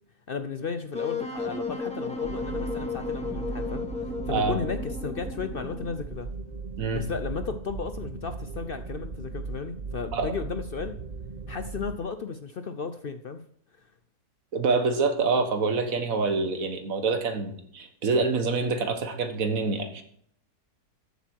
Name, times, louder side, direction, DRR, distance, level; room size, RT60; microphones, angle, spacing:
voice 1, 0.3-6.3 6.9-10.9 11.5-13.4 14.6-15.1, left 5 dB, 60° left, 9 dB, 0.6 m, -34 dB
Wind instrument woodwind instrument, 0.9-6.0, left 4 dB, 5° left, 1.5 m, -34 dB
sound 1, 2.2-12.0, right 4 dB, 35° right, 0.7 m, -37 dB
voice 2, 14.5-20.0, right 4 dB, 60° right, 6 dB, 1.8 m, -26 dB
13.5 x 8.3 x 4.6 m, 0.65 s
omnidirectional pair, 1.7 m